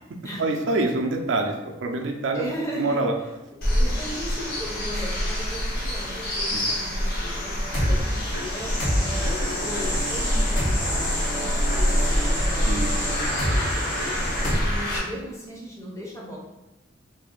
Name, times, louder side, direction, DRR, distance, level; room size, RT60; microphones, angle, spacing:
voice 1, 0.4-2.5 2.8-3.1 12.7-12.9, right 2 dB, 70° right, 3 dB, 0.4 m, -25 dB
voice 2, 2.3-3.0 3.8-8.2 8.5-13.2 14.4-16.4, equal, 15° left, -3 dB, 0.6 m, -37 dB
sound 1, 3.6-15.0, equal, 50° left, 0.9 m, -26 dB
sound 2, 7.2-14.5, equal, 75° left, 1.1 m, -28 dB
2.7 x 2.5 x 3.7 m, 1.0 s
head